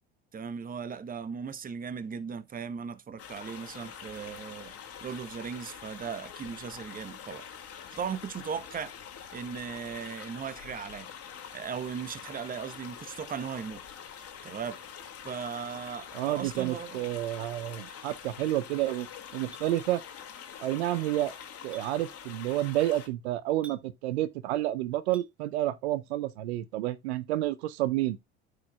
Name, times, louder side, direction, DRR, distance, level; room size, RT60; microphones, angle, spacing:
voice 1, 0.3-4.7 5.0-7.4 7.9-8.9 9.3-11.1 11.5-13.8 14.4-14.8 15.2-17.0, right 7 dB, 25° right, 0.9 m, -37 dB
sound 1, 3.2-23.1, left 8 dB, 45° left, 2.2 m, -45 dB
voice 2, 16.1-19.1 19.3-20.0 20.6-21.3 21.6-28.2, right 14 dB, 75° right, 0.7 m, -30 dB
Chink clink, 19.5-19.7 21.7-21.9 23.6-23.8 25.1-25.3, right 3 dB, 5° right, 1.6 m, -49 dB
13.5 x 4.9 x 2.3 m
hypercardioid pair, 75°, 33 cm